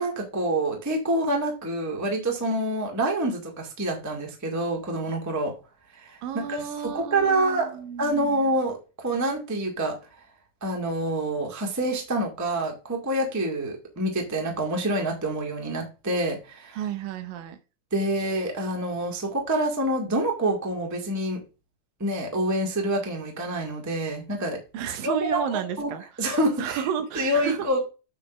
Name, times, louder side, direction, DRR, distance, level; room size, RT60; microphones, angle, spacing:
voice 1, 0.0-5.5 6.0-6.2 6.5-7.7 8.0-9.9 10.6-16.8 17.9-21.4 22.0-24.6 25.0-25.9 26.2-26.8 27.1-27.9, right 1 dB, 10° right, 1 dB, 1.0 m, -27 dB
voice 2, 6.2-8.4 16.7-17.6 24.7-26.3 26.6-27.7, right 8 dB, 75° right, 9 dB, 2.6 m, -32 dB
9.1 x 3.8 x 5.0 m, 0.31 s
omnidirectional pair, 4.1 m